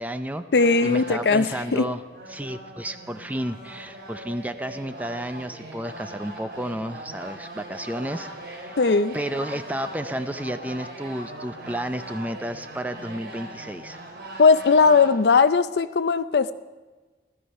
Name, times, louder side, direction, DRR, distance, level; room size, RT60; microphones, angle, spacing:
voice 1, 0.0-0.4 0.8-2.0 2.3-8.8 9.1-14.0, equal, 10° right, 10 dB, 0.5 m, -32 dB
voice 2, 0.5-1.9 8.8-9.2 14.4-16.5, left 4 dB, 75° left, 13 dB, 0.5 m, -19 dB
sound 1, 0.5-15.1, right 1 dB, 90° right, 2.8 m, -40 dB
15.5 x 13.5 x 5.5 m, 1.3 s
head